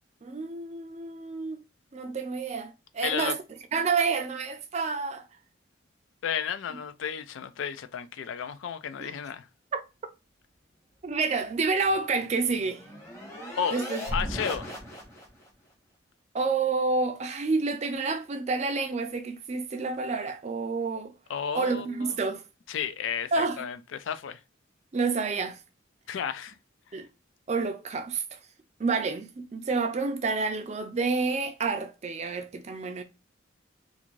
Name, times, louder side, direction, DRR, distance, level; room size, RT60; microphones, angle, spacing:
voice 1, 0.2-1.6 1.9-3.4 3.7-5.2 9.0-9.1 11.0-12.8 13.7-14.0 16.3-21.1 21.5-22.4 23.3-23.6 24.9-25.6 26.9-27.1 27.5-28.4 28.8-33.0, right 4 dB, 35° right, 0.4 m, -29 dB
voice 2, 3.0-3.3 6.2-9.5 13.6-13.8 14.1-14.7 21.3-22.1 22.7-24.4 26.1-26.6, left 7 dB, 75° left, 0.3 m, -32 dB
sound 1, 11.9-15.5, equal, 15° left, 0.8 m, -37 dB
2.5 x 2.5 x 3.0 m
head